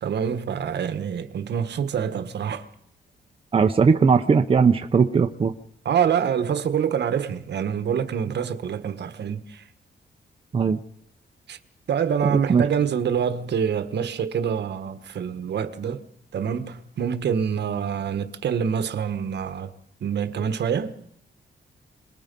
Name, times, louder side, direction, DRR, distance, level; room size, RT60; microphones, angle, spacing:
voice 1, 0.0-2.7 5.8-9.6 11.5-11.6 11.9-16.1 16.3-19.7 20.0-20.9, right 7 dB, 70° right, 1.4 m, -26 dB
voice 2, 3.5-5.5 10.5-10.8 12.2-12.6, right 5 dB, 30° right, 0.8 m, -19 dB
26.5 x 19.5 x 5.4 m
wide cardioid pair, 165°, 18 cm